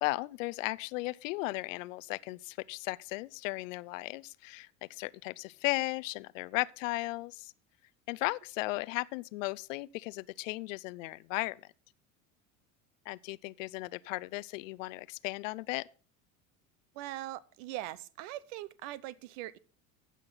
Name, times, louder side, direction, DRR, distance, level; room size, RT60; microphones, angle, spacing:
voice 1, 0.0-7.5 8.1-11.6 13.1-15.9, left 22 dB, 75° left, 0.6 m, -36 dB
voice 2, 16.9-19.6, right 15 dB, 65° right, 0.8 m, -41 dB
15.0 x 6.0 x 4.0 m
hypercardioid pair, 80°, 40 cm